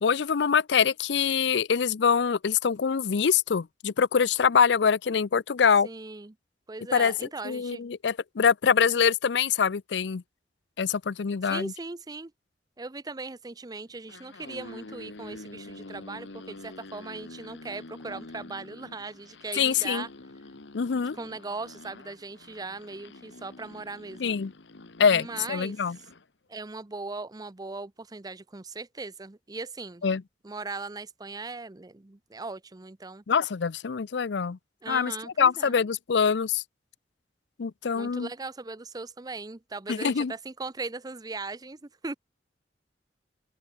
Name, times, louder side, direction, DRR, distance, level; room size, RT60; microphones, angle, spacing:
voice 1, 0.0-5.9 6.9-7.1 7.4-10.2 10.8-11.7 19.5-20.1 20.7-21.2 24.2-24.5 25.0-26.0 30.0-30.2 33.3-34.6 34.9-35.1 35.4-36.6 37.6-38.3 39.9-40.3, left 6 dB, 70° left, 0.5 m, -24 dB
voice 2, 5.8-6.4 6.7-7.8 11.5-12.3 12.8-20.1 20.9-24.4 25.1-25.8 26.5-30.0 30.4-33.2 34.8-35.8 37.9-42.2, right 3 dB, 20° right, 0.6 m, -39 dB
sound 1, 13.9-26.3, left 2 dB, 90° left, 1.4 m, -47 dB
open air
head